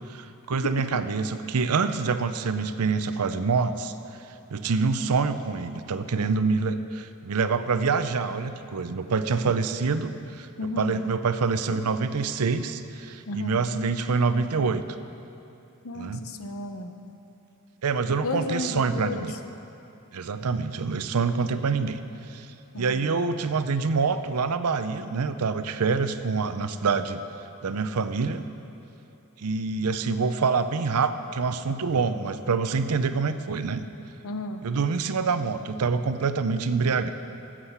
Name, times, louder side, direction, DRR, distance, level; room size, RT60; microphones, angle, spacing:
voice 1, 0.1-3.9 4.5-14.8 15.9-16.2 17.8-19.3 20.1-22.0 22.3-22.5 22.7-27.2 27.6-28.5 29.4-33.8 34.6-37.1, right 4 dB, 85° right, 11 dB, 0.6 m, -26 dB
voice 2, 10.6-11.0 13.3-13.6 15.8-16.9 18.2-19.3 22.7-23.1 34.2-34.6, left 2 dB, 65° left, 7 dB, 0.8 m, -33 dB
14.5 x 7.5 x 5.7 m, 2.9 s
head